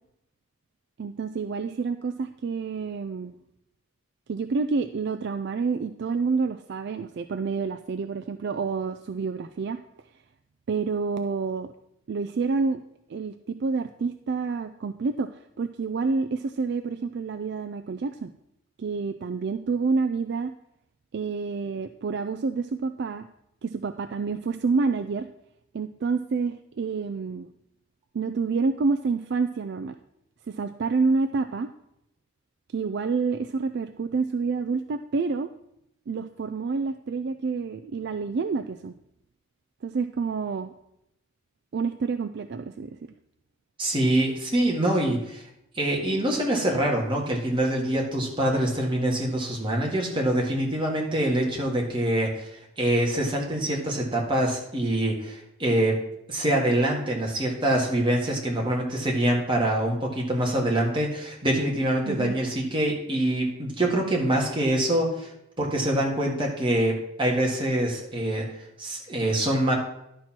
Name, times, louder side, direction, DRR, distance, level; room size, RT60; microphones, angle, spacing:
voice 1, 1.0-3.3 4.3-9.8 10.7-11.7 12.1-12.8 13.1-15.3 15.6-18.3 18.8-20.5 21.1-23.3 23.6-25.3 25.7-27.5 28.1-30.0 30.5-31.7 32.7-35.5 36.1-38.9 39.8-40.7 41.7-43.0 62.0-62.4, right 4 dB, 50° right, 8 dB, 0.3 m, -28 dB
voice 2, 43.8-45.4 45.8-52.5 52.8-56.0 56.3-65.3 65.6-68.5 68.8-69.7, right 1 dB, 25° right, -1 dB, 1.8 m, -25 dB
11.5 x 4.4 x 6.0 m, 0.80 s
head